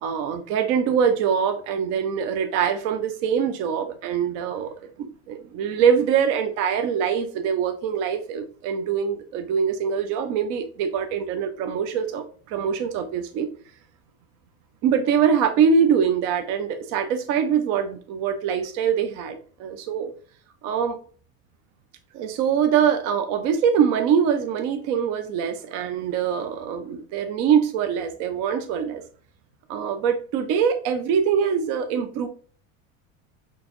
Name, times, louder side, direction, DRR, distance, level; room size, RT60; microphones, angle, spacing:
voice 1, 0.0-13.5 14.8-20.1 20.6-21.0 22.1-29.0 29.7-32.3, right 7 dB, 45° right, 8 dB, 0.5 m, -23 dB
4.1 x 3.0 x 2.9 m, 0.44 s
cardioid pair, 155°, 37 cm